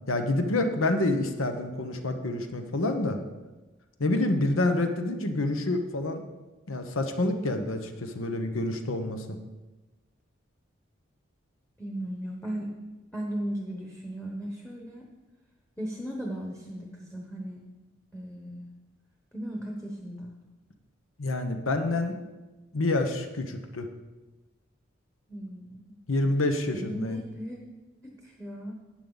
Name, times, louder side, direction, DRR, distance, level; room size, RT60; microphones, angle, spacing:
voice 1, 0.1-3.2 4.0-6.2 6.7-9.4 21.2-22.2 22.7-23.9 26.1-27.2, left 2 dB, 90° left, 6 dB, 1.1 m, -27 dB
voice 2, 11.8-12.7 13.1-15.1 15.8-17.6 18.1-18.7 19.3-20.3 25.3-26.0 26.7-27.6 28.0-28.7, right 1 dB, 5° left, 0 dB, 1.0 m, -36 dB
12.0 x 8.6 x 4.0 m, 1.2 s
head